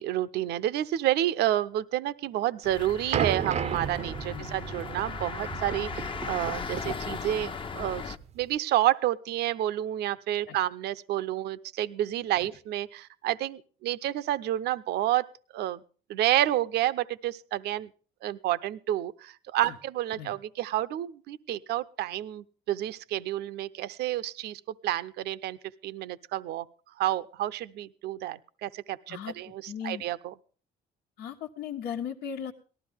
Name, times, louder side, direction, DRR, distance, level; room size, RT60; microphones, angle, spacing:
voice 1, 0.0-15.3 15.5-15.8 16.1-17.9 18.2-25.6 25.8-26.7 27.0-30.3, right 13 dB, 75° right, 14 dB, 0.7 m, -30 dB
sound 1, 2.6-8.2, left 5 dB, 30° left, 0.8 m, -37 dB
sound 2, 3.1-8.5, right 8 dB, 40° right, 0.6 m, -34 dB
voice 2, 29.7-30.1 31.2-32.5, left 8 dB, 80° left, 0 dB, 1.3 m, -37 dB
18.5 x 13.5 x 3.5 m, 0.39 s
cardioid pair, 110°, 17 cm